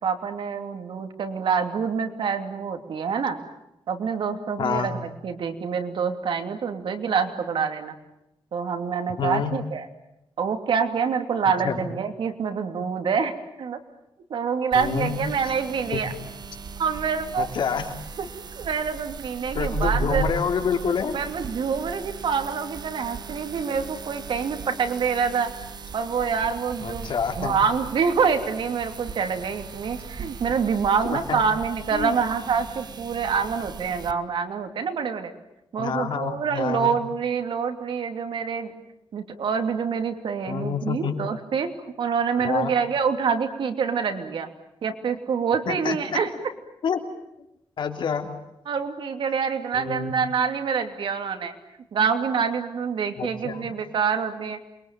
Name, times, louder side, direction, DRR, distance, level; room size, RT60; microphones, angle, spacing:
voice 1, 0.0-3.4 3.9-7.9 8.5-9.9 10.4-13.8 14.3-16.1 16.8-17.5 18.2-18.3 18.6-20.3 21.1-25.5 25.9-27.1 27.4-35.3 35.7-38.7 39.1-44.5 44.8-46.3 48.7-51.5 51.9-54.6, right 6 dB, 70° right, 6 dB, 2.9 m, -26 dB
voice 2, 4.6-4.9 9.2-9.5 11.6-11.8 14.7-15.1 15.9-16.0 17.4-17.9 19.5-21.2 26.8-27.5 31.1-31.4 31.9-32.1 35.8-36.9 40.5-41.1 42.4-42.7 45.7-46.0 46.8-47.0 47.8-48.3 49.8-50.1 53.2-53.6, left 6 dB, 70° left, 5 dB, 3.2 m, -27 dB
sound 1, 14.7-34.1, right 5 dB, 55° right, 1.3 m, -37 dB
28.0 x 23.0 x 9.2 m, 0.86 s
wide cardioid pair, 125°, 9 cm